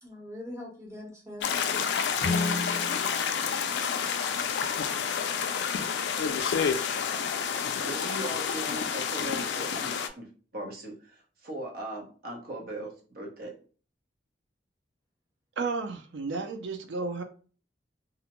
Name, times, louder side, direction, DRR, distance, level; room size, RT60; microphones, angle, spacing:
voice 1, 0.0-2.0, left 1 dB, 15° right, 0.9 m, -43 dB
sound 1, 1.4-10.1, left 7 dB, 70° left, 0.3 m, -29 dB
Guitar, 2.2-4.8, left 2 dB, 10° left, 0.8 m, -35 dB
voice 2, 7.8-10.3 10.5-13.5, right 1 dB, 55° right, 0.8 m, -39 dB
voice 3, 15.6-17.2, right 4 dB, 80° right, 0.4 m, -32 dB
2.5 x 2.1 x 2.9 m
head